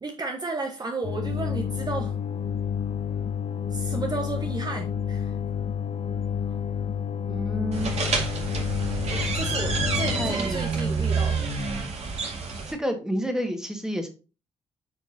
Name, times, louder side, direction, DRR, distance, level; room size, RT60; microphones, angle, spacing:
voice 1, 0.0-2.2 3.7-5.3 9.0-11.5, right 3 dB, 30° right, 3 dB, 1.1 m, -33 dB
sound 1, 1.0-10.3, left 8 dB, 45° left, 0.8 m, -29 dB
voice 2, 7.3-8.0 10.1-10.6 12.7-14.1, equal, 5° right, 5 dB, 1.8 m, -29 dB
sound 2, 7.7-12.7, right 4 dB, 50° right, 2.1 m, -28 dB
9.2 x 5.0 x 2.8 m, 0.34 s
hypercardioid pair, 45°, 14 cm